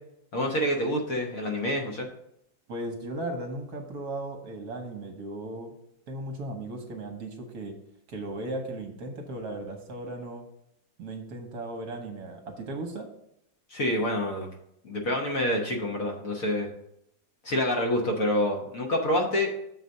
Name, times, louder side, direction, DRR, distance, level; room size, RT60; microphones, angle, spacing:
voice 1, 0.3-2.1 13.7-14.5 14.8-16.7 17.4-19.5, left 1 dB, 55° left, 1 dB, 1.2 m, -27 dB
voice 2, 2.7-5.7 6.1-7.8 8.1-10.4 11.0-13.1, right 2 dB, 60° right, 3 dB, 1.3 m, -36 dB
6.8 x 4.0 x 6.4 m, 0.77 s
omnidirectional pair, 2.0 m